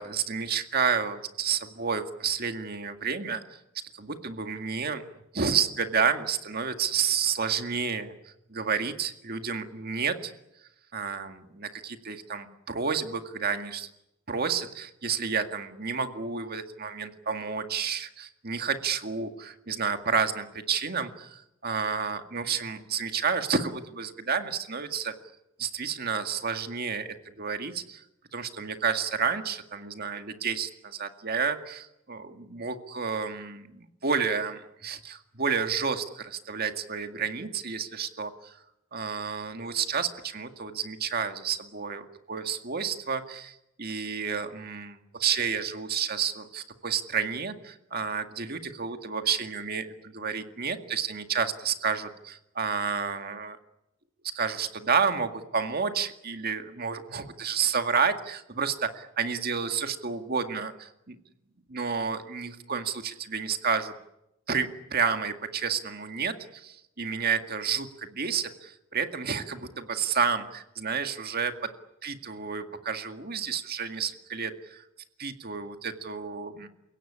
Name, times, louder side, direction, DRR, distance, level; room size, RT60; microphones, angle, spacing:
voice 1, 0.0-3.4 3.9-5.0 5.3-10.3 10.9-13.9 14.3-25.1 25.6-28.0 28.3-38.6 38.9-53.6 54.3-61.2 61.7-63.9 64.5-71.5 72.0-74.8 75.2-76.7, right 6 dB, 45° right, 7 dB, 2.0 m, -30 dB
30.0 x 17.0 x 10.0 m, 0.87 s
head